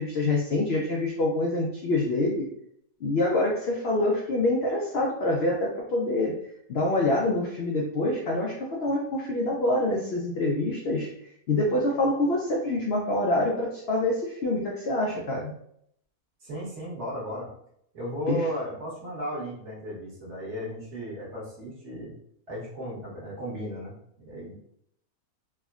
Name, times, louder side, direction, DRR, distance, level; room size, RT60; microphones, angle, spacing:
voice 1, 0.0-2.5 3.0-6.3 6.7-11.1 11.5-15.5 18.3-18.4, left 2 dB, 75° left, -2 dB, 0.5 m, -26 dB
voice 2, 16.4-17.5 17.9-22.1 22.5-24.6, equal, 50° right, -6 dB, 1.4 m, -35 dB
3.3 x 2.1 x 2.3 m, 0.70 s
omnidirectional pair, 1.6 m